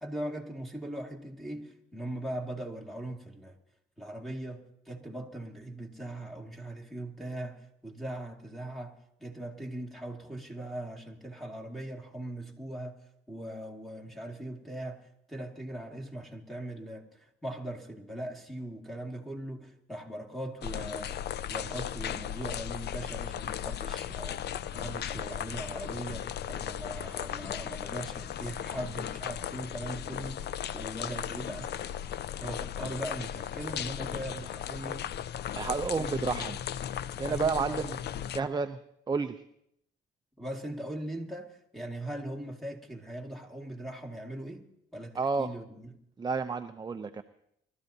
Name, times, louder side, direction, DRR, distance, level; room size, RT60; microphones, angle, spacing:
voice 1, 0.0-3.6 4.0-13.0 13.3-24.4 24.7-31.7 32.4-35.1 35.9-36.5 37.3-37.8 38.4-38.5 40.4-44.6 44.9-46.0, right 1 dB, ahead, -1 dB, 2.1 m, -40 dB
sound 1, 20.6-38.4, left 10 dB, 55° left, 0.4 m, -36 dB
voice 2, 35.5-36.6 37.2-37.9 38.3-38.8 39.1-39.4 45.1-45.5 46.2-47.2, right 5 dB, 20° right, 7 dB, 0.5 m, -30 dB
25.5 x 13.0 x 2.7 m, 0.75 s
cardioid pair, 90°, 20 cm